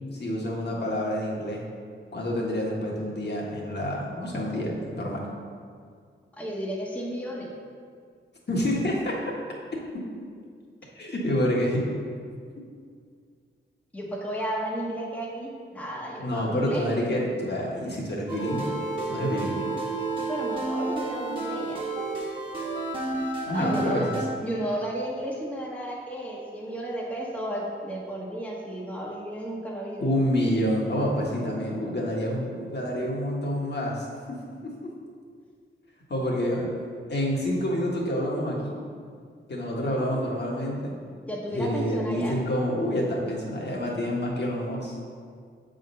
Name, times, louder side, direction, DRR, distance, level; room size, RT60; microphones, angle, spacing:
voice 1, 0.1-1.6 2.1-5.2 8.5-9.2 10.9-11.8 16.2-18.7 19.1-19.6 23.5-24.0 30.0-34.4 34.6-34.7 36.1-36.7 37.1-38.8 39.5-41.0 41.5-45.0, equal, 55° left, -3 dB, 1.4 m, -28 dB
voice 2, 6.3-7.5 13.9-16.9 20.3-21.9 23.5-24.1 24.4-30.1 39.8-40.0 41.3-42.3, right 1 dB, 5° left, -5 dB, 1.0 m, -33 dB
sound 1, 18.3-24.3, right 2 dB, 25° right, 1.3 m, -31 dB
7.2 x 3.8 x 5.5 m, 2.1 s
wide cardioid pair, 110°, 21 cm